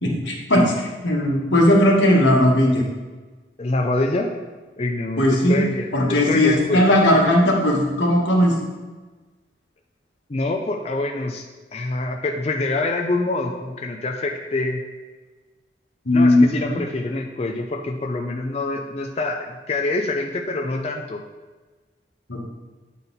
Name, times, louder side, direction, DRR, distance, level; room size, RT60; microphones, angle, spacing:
voice 1, 0.0-2.8 5.2-5.6 5.9-8.5 16.0-16.8 22.3-22.4, left 1 dB, 90° left, -2 dB, 1.5 m, -17 dB
voice 2, 3.6-4.4 4.8-6.8 10.3-11.4 11.7-14.8 16.1-21.2, left 2 dB, 35° left, 2 dB, 0.4 m, -25 dB
8.7 x 4.1 x 4.1 m, 1.3 s
head